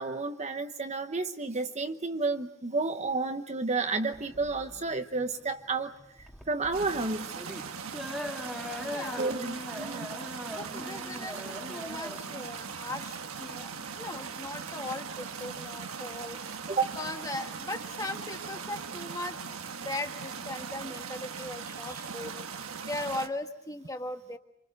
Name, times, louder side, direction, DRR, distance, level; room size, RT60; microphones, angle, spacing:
voice 1, 0.0-5.9 6.2-7.2 9.2-10.1 16.7-17.0, right 3 dB, 30° right, 7 dB, 0.9 m, -31 dB
sound 1, 4.1-14.2, equal, ahead, 1.9 m, -41 dB
sound 2, 6.7-23.3, right 6 dB, 80° right, 1.4 m, -40 dB
voice 2, 8.8-9.3 10.5-16.6 17.0-19.4 19.8-22.3 22.9-24.4, left 2 dB, 15° left, 5 dB, 1.6 m, -38 dB
27.5 x 25.0 x 6.6 m, 0.73 s
head